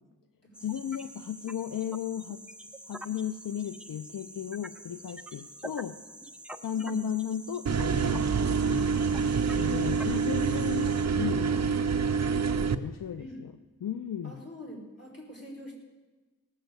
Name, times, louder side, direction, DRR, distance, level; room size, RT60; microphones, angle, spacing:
sound 1, 0.5-11.1, right 1 dB, 5° right, 0.8 m, -46 dB
voice 1, 0.6-2.4 2.9-6.0 6.6-8.9 9.5-11.7 12.6-13.5 13.8-14.5, left 9 dB, 75° left, 12 dB, 0.5 m, -35 dB
voice 2, 6.7-7.1 13.2-13.4 14.2-15.7, equal, 45° left, -2 dB, 4.4 m, -43 dB
sound 2, 7.7-12.8, right 6 dB, 50° right, 0.7 m, -27 dB
18.0 x 6.5 x 8.1 m, 1.3 s
wide cardioid pair, 85°, 33 cm